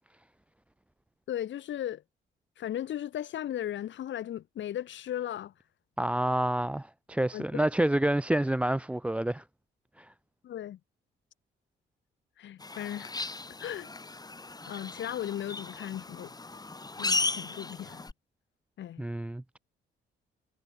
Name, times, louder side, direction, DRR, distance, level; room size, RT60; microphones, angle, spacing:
voice 1, 1.3-2.0 2.6-5.5 7.3-7.7 10.4-10.8 12.4-13.3 13.6-13.9 14.6-16.3 17.0-18.0 18.8-19.1, left 11 dB, 70° left, 2.2 m, -36 dB
voice 2, 6.0-9.4 10.0-10.1 19.0-19.6, right 1 dB, 5° right, 0.5 m, -28 dB
sound 1, 12.6-18.1, left 3 dB, 20° left, 2.6 m, -36 dB
cardioid pair, 90°, 20 cm